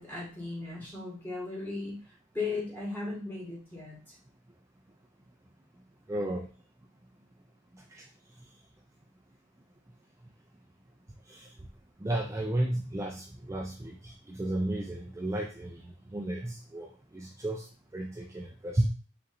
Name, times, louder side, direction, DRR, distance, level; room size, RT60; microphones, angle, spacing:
voice 1, 0.0-2.0 2.3-4.0, left 3 dB, 10° left, -6 dB, 1.9 m, -36 dB
voice 2, 6.1-6.5 7.9-8.0 11.3-11.5 12.0-16.9 17.1-17.7 17.9-18.9, right 1 dB, 15° right, 0 dB, 0.4 m, -33 dB
4.8 x 3.1 x 2.6 m, 0.36 s
head